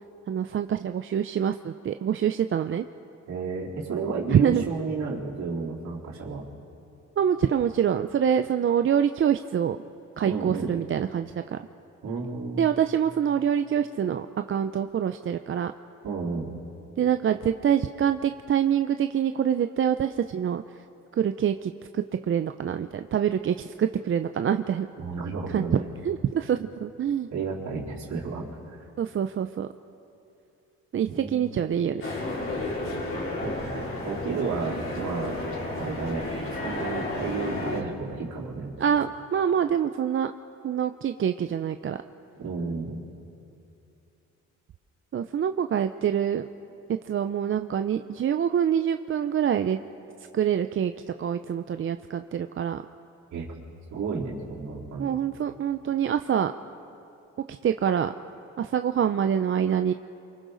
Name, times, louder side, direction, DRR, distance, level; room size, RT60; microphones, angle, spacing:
voice 1, 0.3-2.8 4.3-4.6 7.2-9.8 10.2-11.6 12.6-15.7 17.0-20.8 21.1-24.9 25.5-25.6 26.0-27.3 29.0-29.7 30.9-32.0 38.8-40.3 40.6-42.0 45.1-46.5 47.0-49.8 50.3-50.9 51.2-52.8 55.0-56.5 57.6-58.1 58.6-59.9, right 8 dB, 45° right, 8 dB, 0.6 m, -25 dB
voice 2, 3.3-6.4 10.2-10.7 12.0-12.7 16.0-16.5 25.0-25.9 27.3-28.9 31.1-31.5 33.4-35.4 35.8-36.2 36.6-38.7 42.4-43.0 53.3-53.5 53.9-55.2, right 4 dB, 65° right, -4 dB, 3.9 m, -32 dB
sound 1, 32.0-37.8, left 2 dB, 45° left, 3.6 m, -32 dB
28.5 x 24.5 x 4.0 m, 2.7 s
cardioid pair, 90°, 30 cm